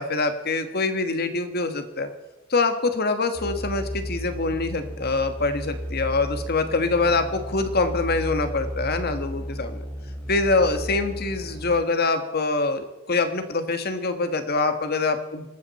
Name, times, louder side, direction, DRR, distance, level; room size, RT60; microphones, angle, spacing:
voice 1, 0.0-2.1 2.5-9.8 10.3-15.5, left 3 dB, 50° left, 8 dB, 1.5 m, -24 dB
sound 1, 3.3-11.8, equal, 10° left, 3.3 m, -34 dB
24.0 x 13.0 x 4.3 m, 1.1 s
head